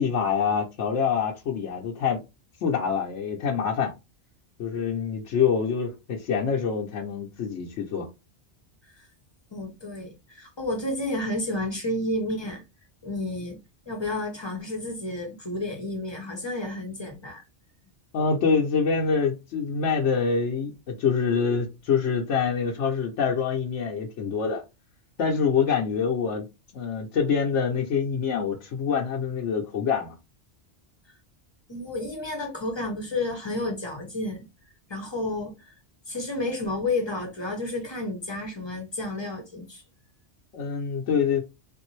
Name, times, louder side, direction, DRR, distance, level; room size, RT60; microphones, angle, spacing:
voice 1, 0.0-2.2 2.6-3.9 4.6-8.1 18.1-24.6 25.2-26.5 26.7-30.2 40.5-41.4, left 6 dB, 85° left, 1.0 m, -25 dB
voice 2, 9.5-12.6 13.0-13.6 13.9-17.4 31.7-34.4 34.9-35.8 36.1-39.8, left 2 dB, 30° left, 0.7 m, -31 dB
3.4 x 2.6 x 3.1 m
omnidirectional pair, 1.2 m